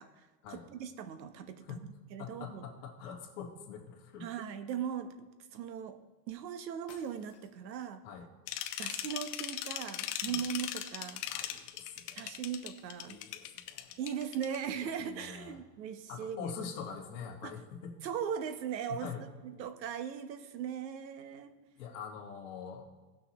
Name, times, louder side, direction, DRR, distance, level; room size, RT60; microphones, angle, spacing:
voice 1, 0.0-1.8 2.1-2.7 4.2-5.1 5.5-6.0 6.3-8.0 8.8-11.2 12.2-13.2 14.0-16.5 17.4-17.6 18.0-21.5, right 8 dB, 90° right, 10 dB, 1.2 m, -39 dB
voice 2, 2.2-4.3 8.0-8.2 10.3-10.4 11.3-12.3 13.1-13.9 14.7-15.5 16.1-17.9 18.9-19.2 21.8-22.8, left 6 dB, 45° left, -1 dB, 2.1 m, -44 dB
sound 1, 6.3-6.4 6.9-7.8, left 7 dB, 15° left, 0.4 m, -59 dB
sound 2, 8.5-14.6, left 12 dB, 65° left, 1.0 m, -39 dB
18.0 x 6.4 x 3.0 m, 1.3 s
supercardioid pair, 175°, 50 cm